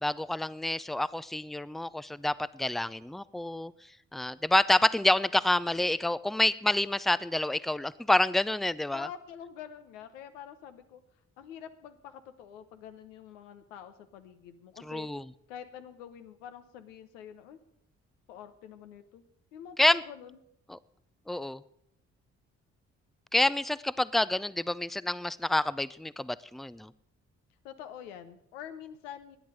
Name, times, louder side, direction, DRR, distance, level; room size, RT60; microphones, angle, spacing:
voice 1, 0.0-3.7 4.1-9.1 14.9-15.2 19.8-20.0 21.3-21.6 23.3-26.9, left 1 dB, ahead, 18 dB, 0.5 m, -28 dB
voice 2, 8.9-11.0 11.4-15.1 15.5-17.6 18.3-19.2 19.5-20.4 27.6-29.4, left 9 dB, 85° left, 9 dB, 1.0 m, -46 dB
12.0 x 10.0 x 7.6 m, 0.71 s
hypercardioid pair, 40°, 37 cm